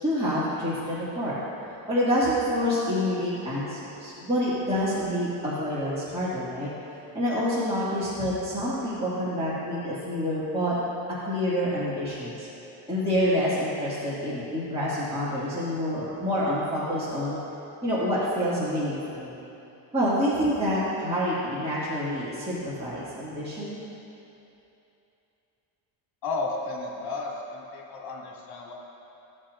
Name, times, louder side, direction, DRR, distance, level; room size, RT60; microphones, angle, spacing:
voice 1, 0.0-1.3 1.9-6.7 7.1-10.7 11.2-12.5 12.9-17.4 17.8-19.3 19.9-23.8, equal, 15° right, -10 dB, 2.0 m, -27 dB
voice 2, 26.2-28.7, left 3 dB, 55° left, -2 dB, 1.9 m, -33 dB
15.5 x 7.4 x 2.5 m, 2.9 s
cardioid pair, 140°, 44 cm